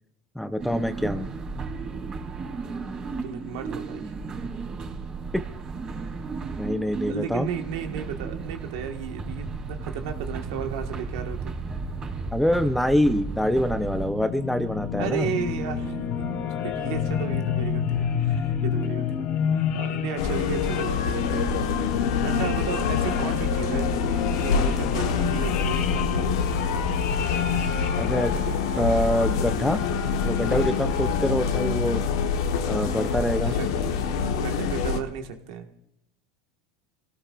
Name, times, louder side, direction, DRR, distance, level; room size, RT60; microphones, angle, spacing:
voice 1, 0.4-1.3 6.6-7.5 12.3-15.3 28.0-28.3 28.8-29.8 30.2-32.0 32.6-33.6, equal, 5° left, 10 dB, 0.7 m, -25 dB
sound 1, 0.6-14.1, right 4 dB, 35° right, 3.8 m, -34 dB
voice 2, 3.2-4.1 7.1-11.6 15.0-16.0 16.6-21.6 22.2-23.9 24.3-26.7 33.4-34.0 34.3-35.7, right 8 dB, 75° right, 4 dB, 1.7 m, -34 dB
sound 2, 13.2-31.4, left 7 dB, 55° left, 1.3 m, -30 dB
sound 3, 20.2-35.0, left 5 dB, 80° left, 1.3 m, -26 dB
27.5 x 17.0 x 2.5 m, 0.72 s
hypercardioid pair, 100°, 2 cm